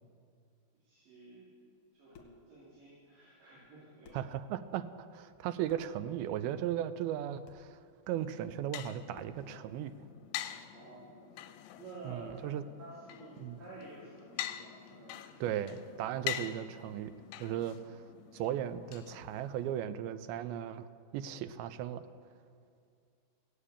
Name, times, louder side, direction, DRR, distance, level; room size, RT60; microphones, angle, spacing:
voice 1, 0.8-1.5 1.9-4.1 10.7-11.4 11.8-12.4 12.8-15.3, right 3 dB, 60° right, -8 dB, 4.4 m, -51 dB
sound 1, 2.0-2.5 3.6-3.7 4.0-4.4 5.6-6.0 7.4-7.7 9.1-9.5, left 5 dB, 65° left, 2.4 m, -56 dB
voice 2, 4.1-7.8 8.1-9.9 12.1-12.6 13.4-13.6 15.4-17.1 17.4-18.0 18.3-20.9 21.1-22.0, right 11 dB, 80° right, 12 dB, 2.3 m, -36 dB
sound 2, 8.1-19.8, left 12 dB, 80° left, 2.4 m, -45 dB
16.0 x 8.5 x 8.6 m, 2.3 s
omnidirectional pair, 4.6 m